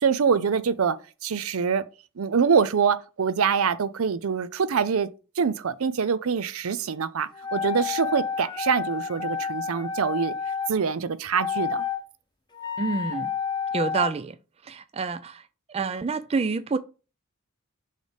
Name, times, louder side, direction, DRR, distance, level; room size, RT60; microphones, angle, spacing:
voice 1, 0.0-1.0 1.2-1.8 2.2-5.1 5.4-10.3 10.7-11.8, right 6 dB, 85° right, 0.5 m, -24 dB
sound 1, 7.3-10.7 11.4-12.0 12.5-14.1, left 6 dB, 20° left, 0.8 m, -30 dB
voice 2, 12.8-13.3 13.7-14.4 14.6-15.4 15.7-16.8, right 4 dB, 30° right, 0.4 m, -27 dB
6.5 x 3.3 x 5.0 m
head